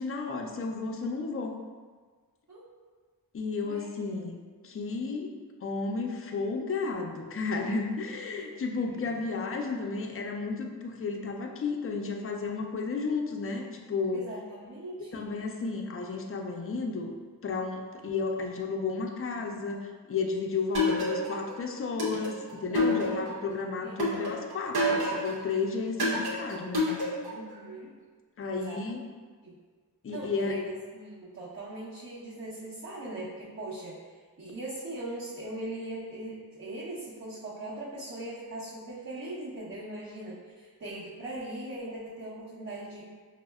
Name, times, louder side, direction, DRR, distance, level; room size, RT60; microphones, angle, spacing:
voice 1, 0.0-1.6 3.3-5.3 5.6-14.3 15.1-17.1 17.4-26.9 28.4-29.0 30.0-30.7, left 4 dB, 40° left, 2 dB, 0.4 m, -33 dB
voice 2, 3.6-4.0 8.3-9.2 14.1-15.3 22.7-23.2 23.8-24.0 27.3-27.9 28.5-28.8 29.4-29.5 30.1-34.0 34.4-43.1, right 1 dB, 45° right, -11 dB, 0.8 m, -40 dB
sound 1, 20.7-21.5 22.0-23.4 24.0-25.4 26.0-27.4, left 1 dB, 80° right, 0.9 m, -28 dB
5.2 x 2.0 x 2.3 m, 1.5 s
wide cardioid pair, 80°, 37 cm